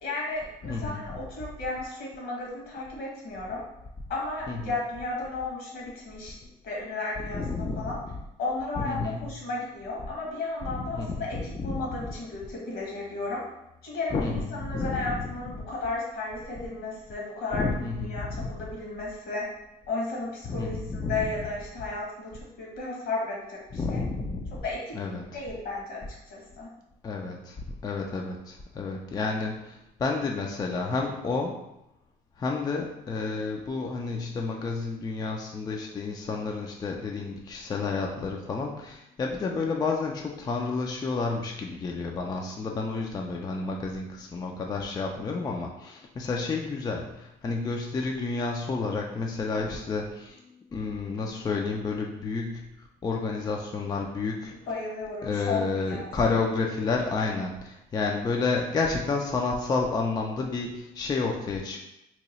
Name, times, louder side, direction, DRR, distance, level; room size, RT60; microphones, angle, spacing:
voice 1, 0.0-3.6 4.1-6.3 6.6-7.4 7.8-8.0 8.4-11.4 11.6-13.4 13.8-17.7 18.0-19.4 19.9-22.3 22.6-23.6 23.9-24.0 24.6-25.0 25.3-26.0 26.3-26.7 54.7-56.1, left 3 dB, 75° left, -3 dB, 1.3 m, -34 dB
voice 2, 0.6-1.2 4.5-4.8 6.4-6.5 7.2-8.2 8.8-9.3 10.6-12.1 14.1-15.7 17.5-18.7 20.5-21.5 23.7-24.6 24.9-25.4 27.0-31.6 32.4-54.6 55.2-61.8, left 4 dB, 25° left, 1 dB, 0.4 m, -30 dB
2.9 x 2.3 x 4.1 m, 0.87 s
cardioid pair, 110°, 17 cm